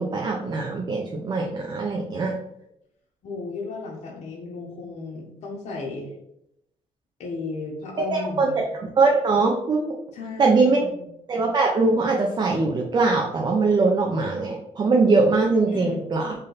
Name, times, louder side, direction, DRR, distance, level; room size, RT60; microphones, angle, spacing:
voice 1, 0.0-2.3 8.1-9.9 10.4-10.8 11.3-16.3, right 3 dB, 35° right, 0 dB, 0.5 m, -22 dB
voice 2, 3.2-6.1 7.2-8.6 10.1-11.1 15.7-16.0, left 3 dB, 70° left, -3 dB, 0.8 m, -34 dB
3.2 x 2.7 x 3.9 m, 0.80 s
cardioid pair, 110°, 12 cm